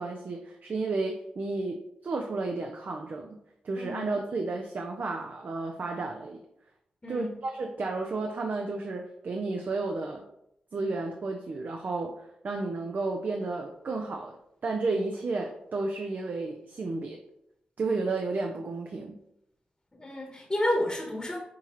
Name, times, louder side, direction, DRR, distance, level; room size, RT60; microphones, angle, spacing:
voice 1, 0.0-3.4 3.6-6.4 7.1-10.2 10.7-12.1 12.4-14.4 14.6-17.2 17.8-19.2, right 3 dB, 60° right, 2 dB, 0.5 m, -32 dB
voice 2, 3.8-4.1 7.0-7.4 20.0-21.4, left 1 dB, 25° left, -1 dB, 1.1 m, -30 dB
6.0 x 2.8 x 3.1 m, 0.78 s
supercardioid pair, 45°, 3 cm